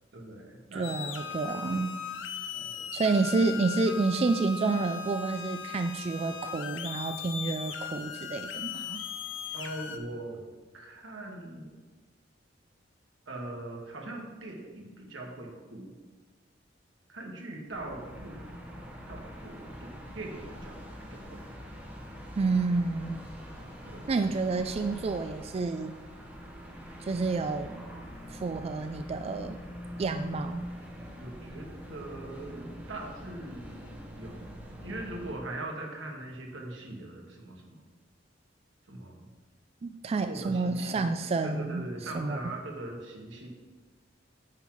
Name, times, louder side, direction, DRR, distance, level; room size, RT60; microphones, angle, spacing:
voice 1, 0.1-0.9 1.6-1.8 2.5-2.9 9.5-10.4 10.7-11.8 13.3-15.9 17.1-18.4 19.1-21.4 23.8-24.1 31.2-34.5 34.8-37.8 38.9-39.3 40.3-41.1 41.4-43.5, right 2 dB, 90° right, 0 dB, 1.7 m, -41 dB
voice 2, 0.7-2.0 2.9-9.0 22.4-23.2 24.1-26.0 27.0-27.8 28.3-29.6 30.0-30.7 39.8-42.4, right 3 dB, 35° right, 8 dB, 0.3 m, -29 dB
sound 1, 0.8-10.0, left 7 dB, 85° left, 0.7 m, -38 dB
sound 2, 17.7-35.4, equal, 10° right, 1.3 m, -44 dB
9.8 x 4.0 x 6.0 m, 1.3 s
head